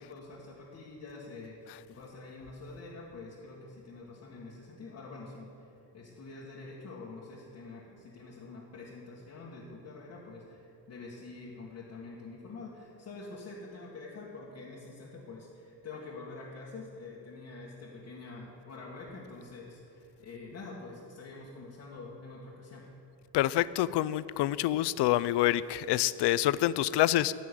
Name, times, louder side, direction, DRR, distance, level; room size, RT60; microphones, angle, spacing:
voice 1, 0.0-5.7 5.9-22.9, left 3 dB, 40° left, -5 dB, 1.8 m, -46 dB
voice 2, 23.3-27.3, left 14 dB, 75° left, 17 dB, 0.5 m, -27 dB
15.5 x 6.2 x 10.0 m, 2.7 s
cardioid pair, 180°, 41 cm